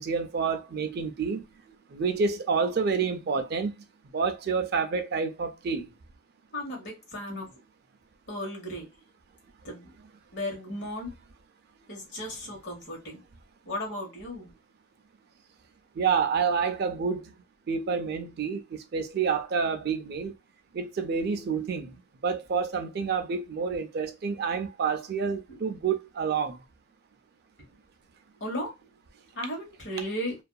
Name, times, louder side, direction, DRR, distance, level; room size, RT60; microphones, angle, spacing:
voice 1, 0.0-1.4 1.9-3.7 4.1-5.9 16.0-17.3 17.7-20.3 20.7-21.9 22.2-26.6, right 5 dB, 50° right, 0.4 m, -28 dB
voice 2, 6.5-7.5 8.3-8.9 9.6-9.9 10.3-11.1 11.9-13.2 13.7-14.5 25.5-25.6 28.4-28.7 29.3-30.4, equal, 55° left, 1.3 m, -35 dB
2.6 x 2.3 x 2.3 m
head